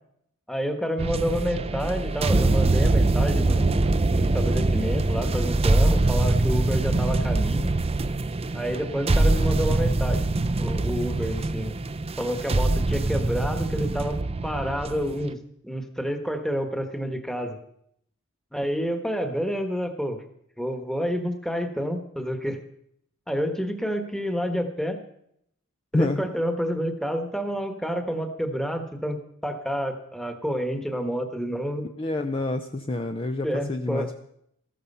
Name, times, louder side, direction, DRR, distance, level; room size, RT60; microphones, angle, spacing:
voice 1, 0.5-3.8 4.1-7.7 8.5-10.2 10.6-11.7 12.2-15.4 15.6-17.6 18.5-20.2 20.6-22.6 23.3-25.0 25.9-31.8 33.4-34.1, equal, ahead, 6 dB, 1.3 m, -29 dB
sound 1, 1.0-15.3, right 2 dB, 30° right, 0.6 m, -23 dB
voice 2, 25.9-26.3 32.0-34.2, left 2 dB, 25° left, 7 dB, 0.6 m, -28 dB
14.5 x 12.5 x 5.5 m, 0.72 s
head